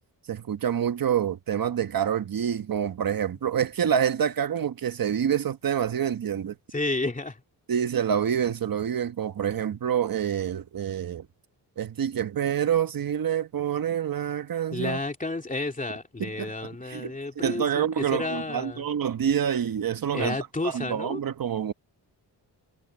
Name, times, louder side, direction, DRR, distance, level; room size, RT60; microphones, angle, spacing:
voice 1, 0.3-6.6 7.7-11.3 11.8-15.0 16.2-17.1 17.4-20.4 20.6-21.7, right 8 dB, 55° right, 1.3 m, -27 dB
voice 2, 6.7-7.4 14.7-18.8 20.1-21.2, left 2 dB, 20° left, 2.8 m, -31 dB
wide cardioid pair, 115°, 42 cm